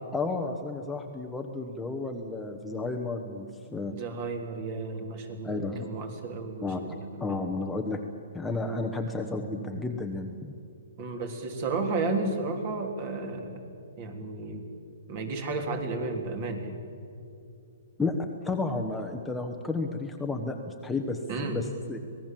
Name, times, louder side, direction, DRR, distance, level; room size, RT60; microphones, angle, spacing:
voice 1, 0.1-4.0 5.4-5.9 6.6-6.8 7.2-8.0 8.3-10.5 18.0-18.1 18.4-22.0, left 3 dB, 5° left, 2 dB, 1.1 m, -32 dB
voice 2, 3.9-7.6 11.0-13.6 14.0-14.7 15.1-16.8 21.3-21.6, right 3 dB, 40° right, 5 dB, 3.4 m, -33 dB
26.0 x 19.0 x 7.6 m, 2.5 s
hypercardioid pair, 160°, 0 cm